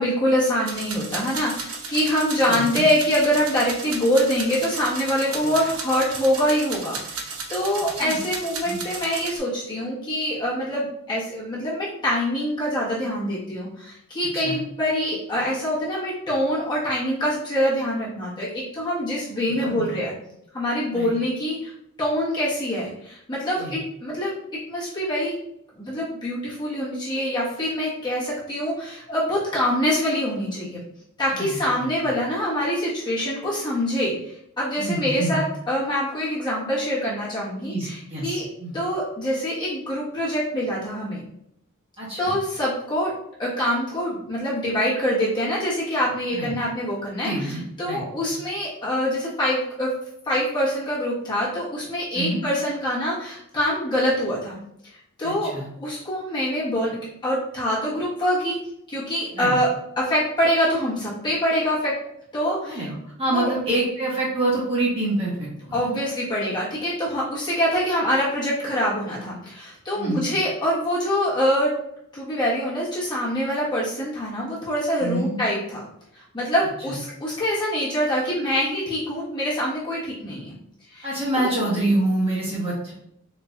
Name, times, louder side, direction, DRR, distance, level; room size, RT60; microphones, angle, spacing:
voice 1, 0.0-20.1 20.5-21.7 22.0-25.3 25.8-30.8 31.2-38.5 38.7-41.2 42.2-43.1 43.4-49.9 50.2-54.6 55.2-58.6 58.9-59.7 60.0-61.9 62.3-62.8 63.3-63.5 65.7-71.7 72.1-75.8 76.1-80.5 80.9-81.1 81.4-81.5, equal, 20° left, -9 dB, 1.2 m, -25 dB
sound 1, 0.7-9.4, right 4 dB, 90° right, 0.7 m, -34 dB
voice 2, 2.5-2.8 7.9-8.2 8.7-8.8 14.3-14.6 19.6-19.9 20.9-21.1 23.6-23.7 31.3-32.1 34.8-35.4 37.7-38.7 42.0-42.3 46.3-46.5 47.2-48.4 52.1-52.4 55.2-55.7 59.3-59.6 62.6-65.9 70.0-70.3 75.0-75.4 76.9-77.0 81.0-82.9, right 2 dB, 25° right, -6 dB, 1.3 m, -27 dB
4.2 x 2.9 x 2.4 m, 0.75 s
head